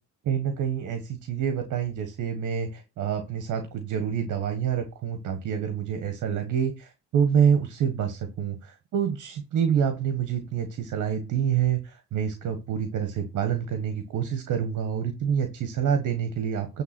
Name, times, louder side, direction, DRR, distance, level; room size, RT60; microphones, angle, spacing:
voice 1, 0.2-16.8, right 8 dB, 80° right, 7 dB, 1.5 m, -27 dB
9.5 x 3.4 x 6.1 m, 0.27 s
cardioid pair, 90°, 30 cm